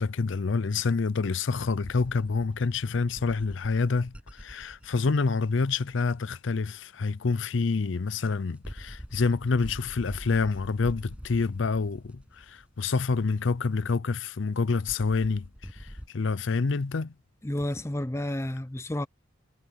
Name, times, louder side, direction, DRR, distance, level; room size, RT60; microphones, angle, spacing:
voice 1, 0.0-15.5 15.7-17.1, left 4 dB, 65° left, 0.5 m, -27 dB
sound 1, 1.8-5.9 7.7-7.8 8.5-13.1 14.9-16.1, equal, 5° right, 7.7 m, -45 dB
voice 2, 17.4-19.1, left 1 dB, 15° left, 0.5 m, -31 dB
head